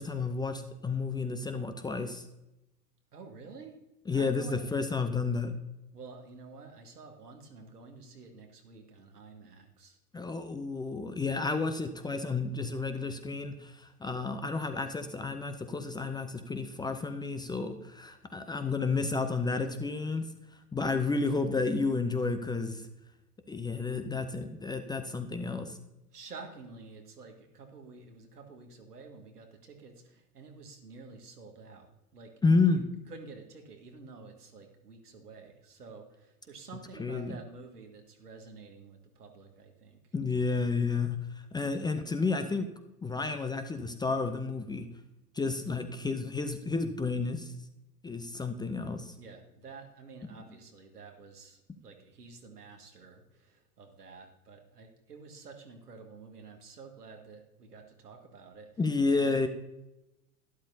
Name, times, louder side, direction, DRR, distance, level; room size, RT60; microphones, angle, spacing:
voice 1, 0.0-2.2 4.1-5.5 10.1-20.3 20.7-22.8 23.5-25.8 32.4-32.8 37.0-37.3 40.1-41.2 41.5-42.7 43.0-44.9 45.3-47.5 48.0-49.1 58.8-59.5, left 4 dB, 10° left, 8 dB, 0.6 m, -31 dB
voice 2, 3.1-3.8 4.1-4.6 5.9-10.0 26.1-32.4 32.6-40.1 49.2-58.7 59.1-59.5, right 4 dB, 80° right, 3 dB, 1.9 m, -50 dB
12.0 x 12.0 x 2.7 m, 0.94 s
figure-of-eight pair, 85°, 46 cm